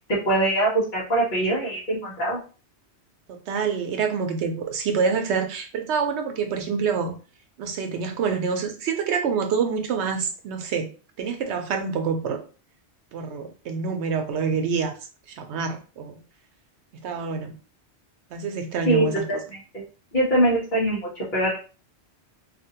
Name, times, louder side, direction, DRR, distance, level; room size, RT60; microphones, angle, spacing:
voice 1, 0.1-2.4 18.9-19.8 20.1-21.0 21.3-21.6, right 1 dB, 45° left, -8 dB, 1.0 m, -23 dB
voice 2, 3.5-7.1 7.6-10.9 11.2-12.4 13.1-14.9 15.4-16.2 17.0-17.5 18.3-19.2, right 5 dB, 80° right, 6 dB, 0.9 m, -26 dB
2.7 x 2.5 x 2.8 m, 0.36 s
omnidirectional pair, 1.2 m